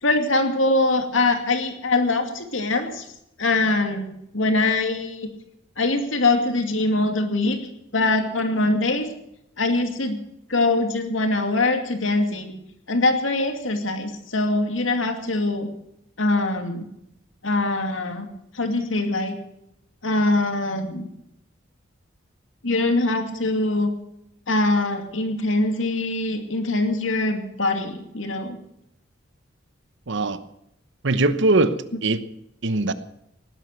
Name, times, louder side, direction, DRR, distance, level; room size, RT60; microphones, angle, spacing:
voice 1, 0.0-3.1 3.4-4.1 4.3-5.3 5.8-7.6 7.9-9.1 9.6-10.2 10.5-12.5 12.9-15.7 16.2-16.9 17.4-18.3 18.5-19.4 20.0-21.1 22.6-23.9 24.5-28.6, left 2 dB, 75° left, 6 dB, 2.5 m, -23 dB
voice 2, 30.1-30.4 31.0-32.2 32.6-32.9, right 2 dB, 65° right, 13 dB, 1.0 m, -21 dB
18.5 x 11.0 x 6.7 m, 0.80 s
head